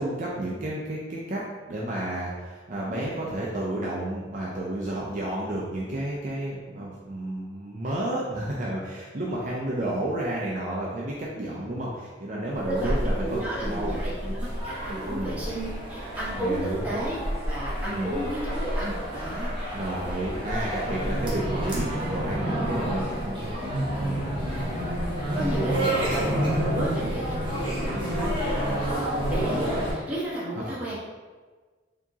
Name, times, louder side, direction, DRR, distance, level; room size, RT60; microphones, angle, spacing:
voice 1, 0.0-14.0 15.1-15.4 16.3-16.8 17.9-18.2 19.7-24.3 24.8-26.2 30.7-30.8, right 1 dB, 40° right, -5 dB, 0.5 m, -32 dB
sound 1, 12.6-29.9, equal, 25° right, 0.9 m, -29 dB
voice 2, 13.2-19.5 23.2-23.3 23.6-23.7 24.3-24.7 25.3-30.9, right 1 dB, 10° right, -10 dB, 1.2 m, -33 dB
4.5 x 2.8 x 2.8 m, 1.4 s
head